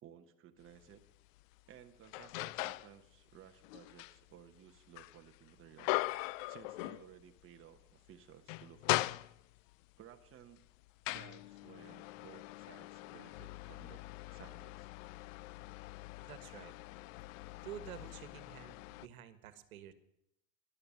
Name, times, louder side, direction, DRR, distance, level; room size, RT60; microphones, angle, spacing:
voice 1, 0.0-1.0 1.7-6.0 6.5-9.2 10.0-10.6 11.1-14.0 14.3-14.9, right 10 dB, 30° right, 6 dB, 1.2 m, -57 dB
sound 1, 0.7-0.8 1.4-2.9 3.3-7.4 7.8-7.9 8.3-9.7 10.4-19.1, left 19 dB, 70° left, 0.5 m, -41 dB
voice 2, 16.2-16.7 17.6-19.9, right 10 dB, 85° right, 13 dB, 1.4 m, -50 dB
12.5 x 11.5 x 7.5 m, 0.80 s
supercardioid pair, 120°, 41 cm